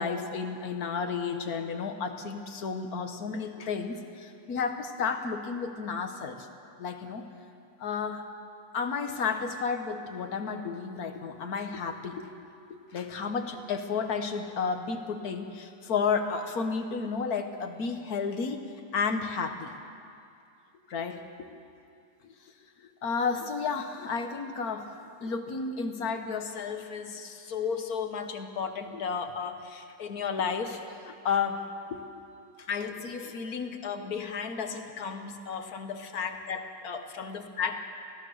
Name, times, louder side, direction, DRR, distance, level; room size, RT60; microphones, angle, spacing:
voice 1, 0.0-6.5 6.8-7.3 7.8-8.3 8.7-18.6 18.9-19.7 20.9-21.6 22.2-22.3 22.8-24.9 25.2-31.6 31.9-32.0 32.6-37.8, left 5 dB, 55° left, 6 dB, 1.7 m, -32 dB
24.0 x 16.5 x 6.5 m, 2.4 s
omnidirectional pair, 1.9 m